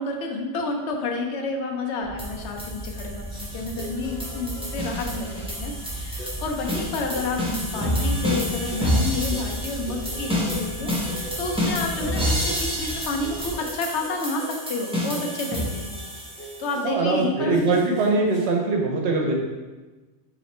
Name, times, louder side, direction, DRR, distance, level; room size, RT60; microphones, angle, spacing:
voice 1, 0.0-16.0 16.6-17.8, left 3 dB, 75° left, 2 dB, 0.9 m, -30 dB
sound 1, 2.0-13.5, right 1 dB, 30° left, 1.1 m, -37 dB
sound 2, 2.2-16.7, left 1 dB, 5° right, 0.8 m, -29 dB
sound 3, 3.3-18.5, right 1 dB, 45° left, 1.3 m, -42 dB
voice 2, 16.8-19.3, right 3 dB, 75° right, 1 dB, 0.9 m, -22 dB
3.2 x 2.8 x 4.1 m, 1.2 s
omnidirectional pair, 1.2 m